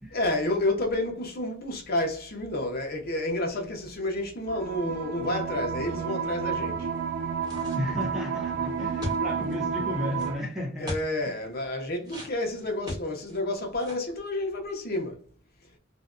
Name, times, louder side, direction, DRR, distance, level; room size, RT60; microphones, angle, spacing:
voice 1, 0.1-6.9 10.8-15.2, left 1 dB, 50° left, 0.7 m, -30 dB
sound 1, 4.5-10.4, right 6 dB, 55° right, 0.4 m, -31 dB
sound 2, 7.4-8.1 9.0-9.5 10.2-10.3 10.9-11.1 12.0-13.4 13.7-14.1, left 1 dB, 20° right, 1.0 m, -37 dB
voice 2, 7.8-10.9 11.2-11.4, left 1 dB, ahead, 0.5 m, -33 dB
2.6 x 2.2 x 2.4 m
head